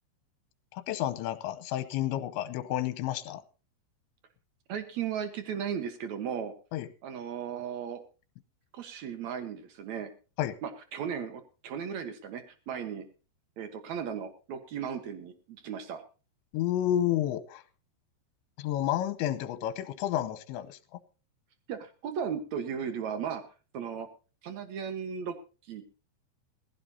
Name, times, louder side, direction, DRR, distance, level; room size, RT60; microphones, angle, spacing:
voice 1, 0.7-3.4 6.7-6.9 10.4-10.6 16.5-17.6 18.6-20.8, left 12 dB, 85° left, 12 dB, 3.2 m, -30 dB
voice 2, 4.7-6.5 7.0-8.0 8.7-10.1 10.6-13.1 13.6-16.0 21.7-23.4 23.7-24.1 24.4-25.3 25.6-25.8, right 7 dB, 80° right, 8 dB, 1.6 m, -36 dB
19.0 x 15.5 x 2.8 m, 0.35 s
omnidirectional pair, 5.2 m